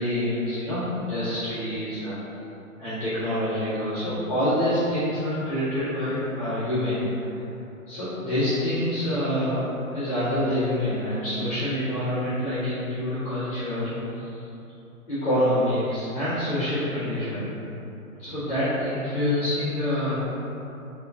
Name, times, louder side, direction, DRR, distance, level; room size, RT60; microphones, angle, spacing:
voice 1, 0.0-2.1 2.8-7.3 7.9-9.6 9.9-14.5 15.1-17.5 18.2-20.2, left 1 dB, 10° left, -14 dB, 0.8 m, -26 dB
3.8 x 2.8 x 3.8 m, 2.9 s
hypercardioid pair, 170°, 43 cm